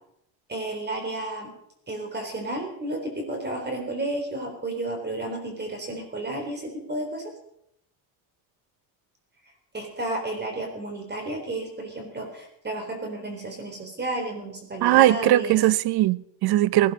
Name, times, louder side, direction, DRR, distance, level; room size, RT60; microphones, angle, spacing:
voice 1, 0.5-1.5 1.9-7.3 9.7-15.6, right 2 dB, 25° right, 4.0 m, -32 dB
voice 2, 14.8-16.9, right 15 dB, 70° right, 0.8 m, -20 dB
19.5 x 13.0 x 5.5 m
cardioid pair, 130°, 39 cm